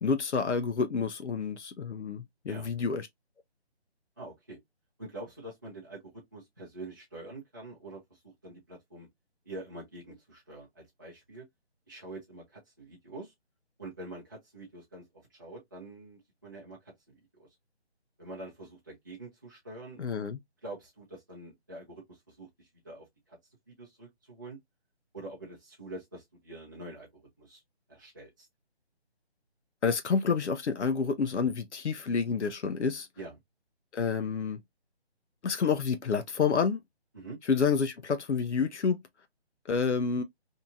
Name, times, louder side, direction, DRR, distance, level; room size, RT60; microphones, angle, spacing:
voice 1, 0.0-3.1 20.0-20.4 29.8-33.1 33.9-34.6 35.4-36.8 37.5-39.0 39.7-40.2, left 5 dB, 85° left, 0.7 m, -29 dB
voice 2, 4.2-4.6 5.0-9.1 9.4-11.5 11.9-13.3 13.8-15.0 15.3-16.9 17.3-17.5 18.2-20.0 20.6-23.4 23.7-24.6 25.1-27.6 27.9-28.5 33.2-33.4 37.1-37.4, right 2 dB, 20° right, 0.6 m, -45 dB
2.8 x 2.7 x 2.3 m
hypercardioid pair, 170°, 34 cm